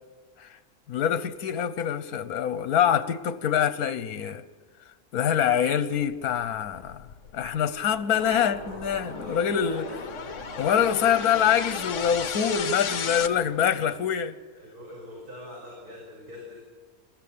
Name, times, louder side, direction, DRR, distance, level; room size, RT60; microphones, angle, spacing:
voice 1, 0.9-4.4 5.1-7.0 7.3-9.9 10.6-14.3, left 8 dB, 75° left, 1.4 m, -25 dB
sound 1, 6.7-13.3, left 7 dB, 60° left, 1.3 m, -36 dB
sound 2, 8.1-13.9, right 1 dB, 45° right, 4.3 m, -44 dB
voice 2, 9.1-10.1 10.5-10.9 13.3-14.0 14.6-16.5, equal, 85° right, 6.1 m, -43 dB
28.0 x 15.0 x 8.7 m
omnidirectional pair, 1.6 m